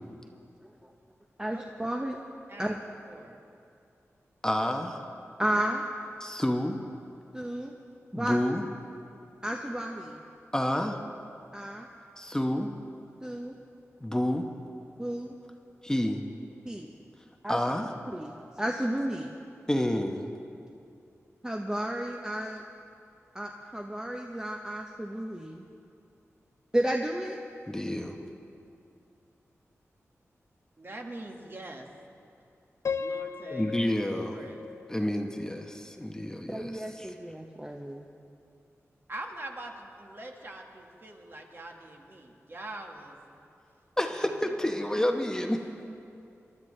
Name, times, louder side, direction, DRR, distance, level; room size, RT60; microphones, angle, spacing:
voice 1, 1.4-2.2 2.6-2.7 5.4-5.9 7.3-7.7 8.1-8.4 9.4-10.2 11.5-11.9 13.2-13.5 15.0-15.3 16.6-16.9 17.4-17.6 18.1-19.4 21.4-22.6 23.3-25.6 26.7-27.4 36.5-38.1, right 1 dB, 15° right, 2 dB, 0.8 m, -32 dB
voice 2, 2.5-2.8 3.1-3.4 30.8-31.9 32.2-32.3 33.0-33.8 34.1-34.6 39.1-43.3 44.0-45.6, right 2 dB, 45° right, 1 dB, 1.5 m, -43 dB
voice 3, 4.4-5.0 6.2-6.8 8.1-8.7 10.5-11.0 12.2-12.7 14.0-14.5 15.8-16.2 17.5-17.9 19.7-20.2 27.7-28.2 33.5-34.4 34.9-37.1 44.0-45.6, left 1 dB, 10° left, 3 dB, 0.9 m, -29 dB
Piano, 32.8-35.9, left 6 dB, 75° left, 0.4 m, -37 dB
22.5 x 12.5 x 3.2 m, 2.6 s
wide cardioid pair, 80°, 5 cm